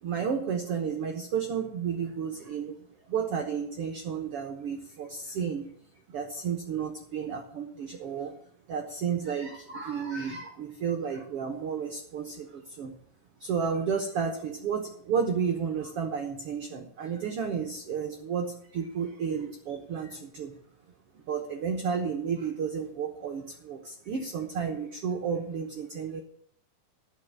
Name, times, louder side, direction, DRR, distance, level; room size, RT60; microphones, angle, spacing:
voice 1, 0.0-2.7 3.1-5.7 6.1-8.3 8.7-12.9 13.4-20.5 21.1-26.2, right 6 dB, 70° right, 3 dB, 1.4 m, -32 dB
11.5 x 6.2 x 8.0 m, 0.64 s
omnidirectional pair, 4.3 m